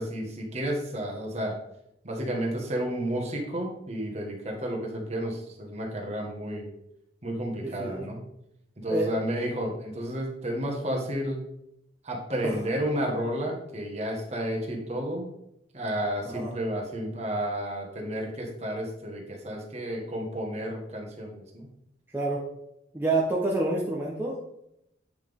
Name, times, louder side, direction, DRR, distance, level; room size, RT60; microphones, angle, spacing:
voice 1, 0.0-1.6 2.0-6.7 7.2-8.2 8.8-11.4 12.0-15.3 15.7-21.7, equal, 35° right, 0 dB, 1.6 m, -31 dB
voice 2, 7.6-8.1 8.9-9.0 12.4-12.6 16.3-16.5 22.1-22.4 22.9-24.4, right 2 dB, 10° right, -4 dB, 1.0 m, -28 dB
8.9 x 5.8 x 3.6 m, 0.80 s
head